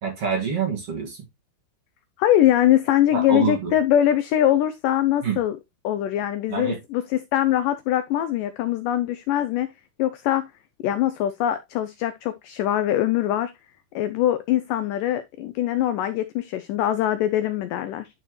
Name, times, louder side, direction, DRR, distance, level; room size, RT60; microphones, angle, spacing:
voice 1, 0.0-1.2 3.1-3.7 5.2-5.4 6.5-6.8, right 5 dB, 45° right, 2.4 m, -26 dB
voice 2, 2.2-5.6 5.8-9.7 10.0-10.5 10.8-13.5 14.0-18.1, left 12 dB, 90° left, 1.8 m, -22 dB
11.0 x 4.3 x 3.1 m
omnidirectional pair, 4.5 m